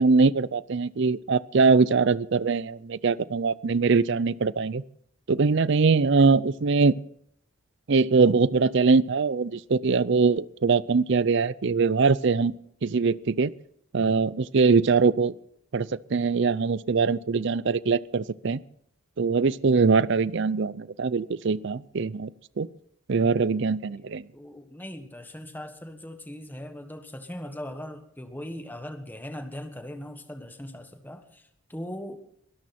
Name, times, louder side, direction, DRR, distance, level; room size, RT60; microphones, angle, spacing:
voice 1, 0.0-4.8 5.3-6.9 7.9-12.5 12.8-13.5 13.9-15.3 15.7-18.6 19.2-22.3 22.6-22.7 23.1-24.2, right 4 dB, 55° right, 19 dB, 0.5 m, -22 dB
voice 2, 23.8-32.2, left 1 dB, 10° left, 7 dB, 1.4 m, -40 dB
23.0 x 12.5 x 4.3 m, 0.67 s
head